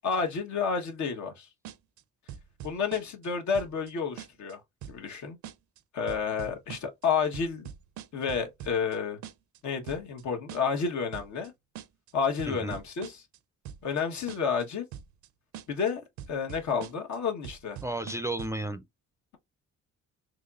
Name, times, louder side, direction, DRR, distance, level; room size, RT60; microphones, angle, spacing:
voice 1, 0.0-1.5 2.6-4.6 4.9-5.4 5.9-7.7 8.1-9.2 9.6-11.5 12.1-13.2 13.8-14.9 15.7-16.0 16.3-17.8, left 6 dB, 70° left, 1.2 m, -30 dB
sound 1, 1.7-2.0 2.3-3.3 3.5-3.9 4.2-4.5 4.8-5.2 5.4-5.8 6.1-7.1 7.3-9.0 9.2-9.6 9.9-10.2 10.5-10.9 11.1-11.5 11.8-12.1 12.4-13.4 13.7-14.0 14.3-14.6 14.9-15.3 15.5-15.9 16.2-17.2 17.4-18.6, right 9 dB, 70° right, 0.5 m, -43 dB
voice 2, 12.5-12.8 17.8-18.8, right 2 dB, 10° right, 0.4 m, -33 dB
4.0 x 3.0 x 2.4 m
cardioid pair, 90°, 30 cm